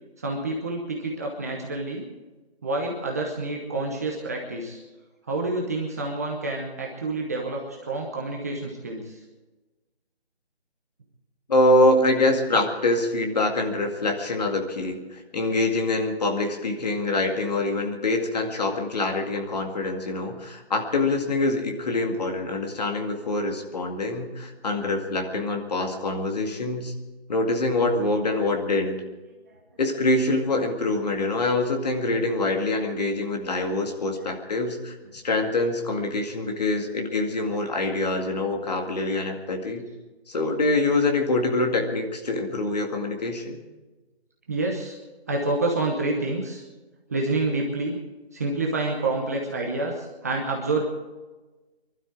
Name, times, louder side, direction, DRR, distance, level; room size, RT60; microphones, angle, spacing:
voice 1, 0.2-2.1 2.6-4.8 5.3-9.2 44.5-45.0 45.3-46.6 47.1-48.0 48.3-50.8, right 2 dB, 15° right, -1 dB, 1.0 m, -28 dB
voice 2, 11.5-26.9 27.3-29.0 29.8-39.8 40.3-43.6, left 2 dB, 40° left, 3 dB, 2.2 m, -25 dB
24.0 x 12.5 x 4.7 m, 1.2 s
figure-of-eight pair, 165°, 33 cm